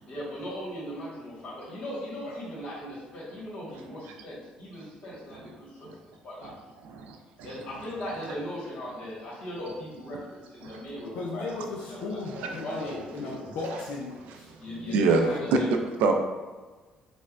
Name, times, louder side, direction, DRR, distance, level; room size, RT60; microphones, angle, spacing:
voice 1, 0.1-5.8 6.2-6.5 7.4-11.5 11.8-13.4 13.7-13.8 14.6-15.7, equal, 60° left, -6 dB, 1.4 m, -38 dB
voice 2, 6.8-7.5 10.6-10.8 14.9-15.2 16.0-16.1, right 4 dB, 80° right, 4 dB, 0.3 m, -25 dB
voice 3, 11.1-15.4, left 3 dB, 85° left, -2 dB, 0.4 m, -37 dB
3.3 x 2.1 x 2.4 m, 1.3 s
supercardioid pair, 70°, 3 cm